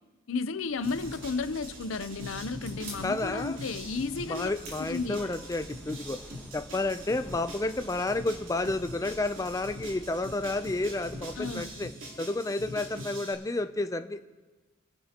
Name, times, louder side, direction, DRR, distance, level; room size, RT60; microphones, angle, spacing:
voice 1, 0.3-4.5 4.8-5.2 11.4-11.7, left 4 dB, 85° left, 0.6 m, -33 dB
sound 1, 0.7-11.9, equal, ahead, 1.1 m, -50 dB
sound 2, 0.7-5.7, right 2 dB, 50° right, 3.6 m, -51 dB
rushed mirror.R, 0.8-13.3, equal, 80° right, 3.1 m, -43 dB
voice 2, 3.0-3.6 4.3-6.2 6.5-11.9 12.2-14.2, left 2 dB, 15° left, 0.4 m, -31 dB
26.5 x 10.0 x 2.9 m
head